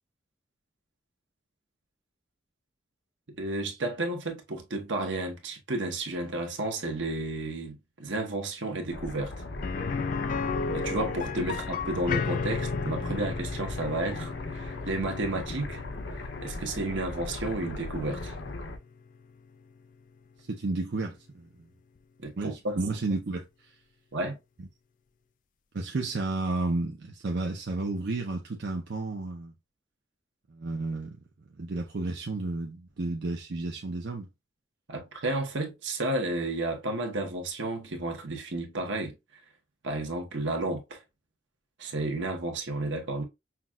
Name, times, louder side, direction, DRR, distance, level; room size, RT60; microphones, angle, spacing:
voice 1, 3.3-9.4 10.7-15.8 16.4-18.4 22.2-22.8 24.1-24.4 34.9-39.1 39.8-41.0 41.8-43.2, right 2 dB, 80° right, 1.0 m, -32 dB
sound 1, 8.9-18.8, left 2 dB, 70° left, 0.7 m, -38 dB
sound 2, 9.6-19.4 19.7-19.8 22.2-22.3, left 5 dB, 45° left, 0.3 m, -35 dB
voice 2, 20.5-21.7 22.4-23.7 25.7-29.5 30.5-31.2 31.6-34.3, right 2 dB, 60° right, 0.6 m, -32 dB
5.8 x 2.4 x 2.3 m
head